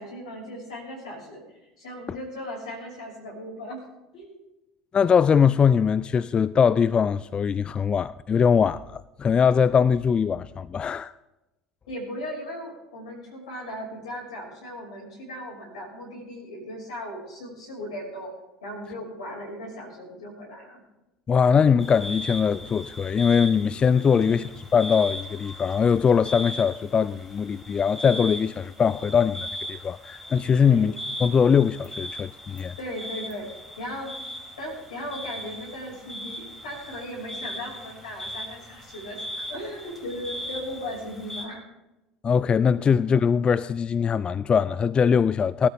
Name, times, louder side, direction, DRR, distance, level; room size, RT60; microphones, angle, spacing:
voice 1, 0.0-1.4 1.8-3.8 4.1-4.4 11.9-18.3 18.6-20.8 24.1-24.4 30.6-30.9 32.8-33.5 33.8-34.1 34.6-41.6 42.8-42.9, equal, 80° left, 5.9 m, -37 dB
voice 2, 4.9-11.1 21.3-32.7 42.2-45.7, left 6 dB, 30° left, 0.3 m, -21 dB
sound 1, 21.8-41.5, equal, 5° left, 5.1 m, -39 dB
19.5 x 13.0 x 3.6 m
figure-of-eight pair, 65°, 3 cm